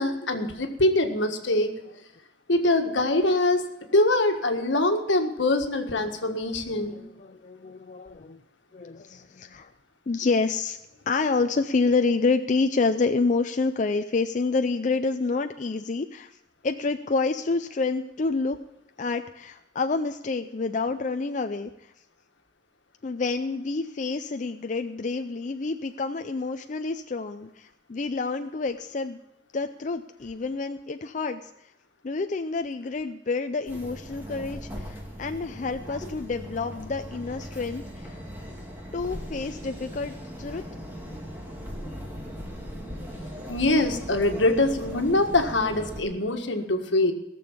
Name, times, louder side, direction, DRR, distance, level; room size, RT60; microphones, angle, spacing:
voice 1, 0.0-1.7 2.5-3.7 3.9-7.0 43.5-47.1, left 2 dB, 80° left, 6 dB, 1.6 m, -23 dB
voice 2, 6.7-8.4 8.7-9.7 10.1-10.8 11.1-16.4 16.6-18.6 19.0-21.9 23.0-29.2 29.5-31.5 32.0-38.2 38.9-40.6, left 4 dB, 40° left, 7 dB, 0.4 m, -28 dB
sound 1, 33.7-46.0, equal, 10° right, 2.4 m, -39 dB
17.5 x 6.9 x 7.2 m, 0.91 s
head